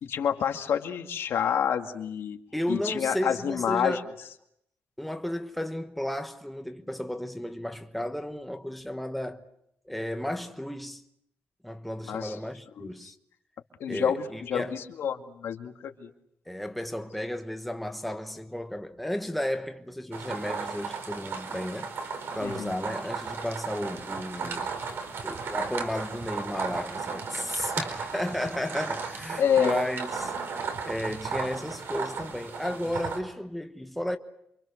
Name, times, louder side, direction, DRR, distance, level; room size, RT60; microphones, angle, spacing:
voice 1, 0.0-2.4 2.7-4.0 12.1-12.4 12.8-12.9 13.8-16.1 22.4-22.7 29.4-29.8, left 8 dB, 90° left, 2.2 m, -28 dB
voice 2, 2.5-4.1 5.0-9.4 9.9-11.0 11.6-13.1 13.9-14.7 16.5-24.7 25.2-34.2, left 1 dB, ahead, 1.1 m, -33 dB
sound 1, 20.1-33.2, right 5 dB, 70° right, 4.6 m, -35 dB
28.0 x 25.5 x 6.6 m
wide cardioid pair, 175°, 4 cm